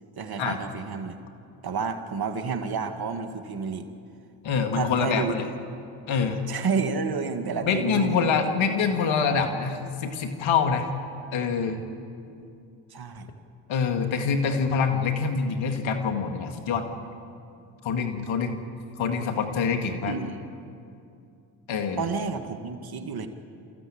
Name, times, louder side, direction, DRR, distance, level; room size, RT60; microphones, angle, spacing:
voice 1, 0.2-1.2 1.6-3.9 4.7-5.4 6.5-8.8 12.3-12.4 12.9-13.3 20.1-20.4 22.0-23.3, right 5 dB, 50° right, 7 dB, 2.0 m, -30 dB
voice 2, 4.4-5.4 6.1-6.4 7.6-10.9 11.3-11.8 13.7-16.9 17.8-18.6 19.0-20.1 21.7-22.0, left 5 dB, 75° left, 6 dB, 2.1 m, -25 dB
27.5 x 15.0 x 8.8 m, 2.5 s
supercardioid pair, 55°, 47 cm